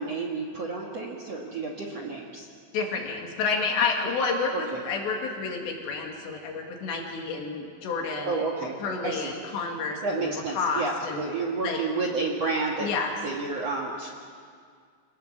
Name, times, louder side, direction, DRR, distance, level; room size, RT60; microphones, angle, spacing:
voice 1, 0.0-2.5 8.3-8.8 9.0-9.3 10.0-12.9 13.2-14.1, right 3 dB, 55° right, -1 dB, 1.9 m, -30 dB
voice 2, 2.7-11.2 11.6-11.8 12.8-13.1, left 4 dB, 75° left, 1 dB, 4.6 m, -30 dB
26.5 x 19.0 x 7.6 m, 2.1 s
omnidirectional pair, 5.1 m